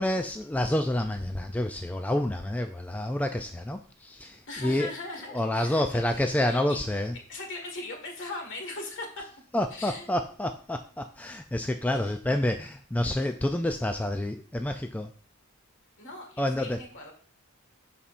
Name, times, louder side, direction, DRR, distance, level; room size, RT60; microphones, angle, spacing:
voice 1, 0.0-4.9 5.3-7.2 9.5-15.1 16.4-16.8, left 1 dB, 5° left, 5 dB, 0.3 m, -28 dB
voice 2, 4.5-5.8 6.1-6.8 7.3-9.2 9.7-10.1 16.0-17.1, left 2 dB, 60° left, 2 dB, 1.8 m, -39 dB
12.5 x 4.2 x 2.5 m, 0.43 s
head